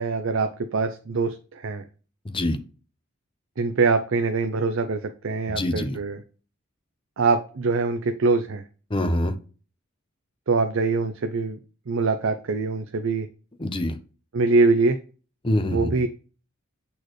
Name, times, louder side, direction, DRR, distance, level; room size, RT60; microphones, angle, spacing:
voice 1, 0.0-1.8 3.6-6.2 7.2-8.6 10.5-11.6 11.9-13.3 14.3-15.0 15.7-16.1, right 3 dB, 65° right, 7 dB, 0.5 m, -23 dB
voice 2, 2.3-2.6 5.5-6.0 8.9-9.3 13.6-13.9 15.4-15.9, left 1 dB, 25° left, 8 dB, 0.7 m, -25 dB
8.2 x 4.3 x 3.1 m, 0.37 s
head